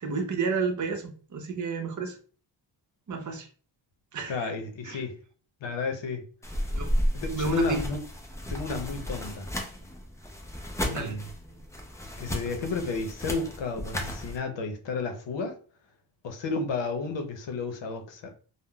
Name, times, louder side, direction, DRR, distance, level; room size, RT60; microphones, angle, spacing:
voice 1, 0.0-2.2 3.1-3.5 4.1-4.5 4.8-5.0 6.7-6.9 7.3-7.8 10.9-11.2, right 4 dB, 40° right, 0.7 m, -31 dB
voice 2, 4.3-5.2 5.6-6.2 7.1-8.0 8.5-9.5 10.8-11.2 12.2-15.5 16.2-18.3, left 4 dB, 75° left, 0.8 m, -32 dB
sound 1, 6.4-14.4, equal, 5° left, 0.4 m, -33 dB
3.6 x 2.1 x 2.2 m
cardioid pair, 100°, 45 cm